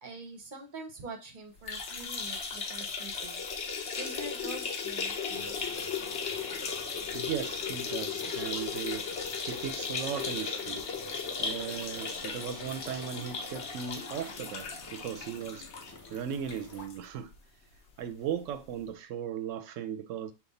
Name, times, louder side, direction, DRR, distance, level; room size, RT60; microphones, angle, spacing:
voice 1, 0.0-3.4 4.0-5.6, right 2 dB, 40° right, 0.8 m, -44 dB
sound 1, 1.6-17.0 17.3-17.4 17.7-17.8 18.8-18.9, left 5 dB, 55° left, 1.0 m, -36 dB
sound 2, 5.3-16.9, left 2 dB, 20° left, 0.5 m, -50 dB
voice 2, 6.9-10.9 11.4-15.7 16.1-17.3 18.0-20.3, right 8 dB, 70° right, 0.9 m, -37 dB
5.3 x 2.4 x 4.0 m
omnidirectional pair, 1.5 m